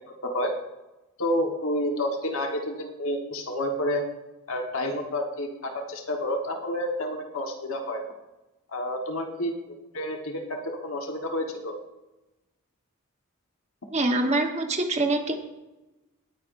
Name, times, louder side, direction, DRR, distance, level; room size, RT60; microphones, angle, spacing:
voice 1, 0.1-0.5 1.2-4.1 4.5-8.1 8.7-11.8, left 1 dB, 70° left, 2 dB, 1.2 m, -30 dB
voice 2, 13.9-15.4, right 2 dB, 30° right, 4 dB, 1.1 m, -24 dB
19.0 x 9.4 x 2.5 m, 1.0 s
head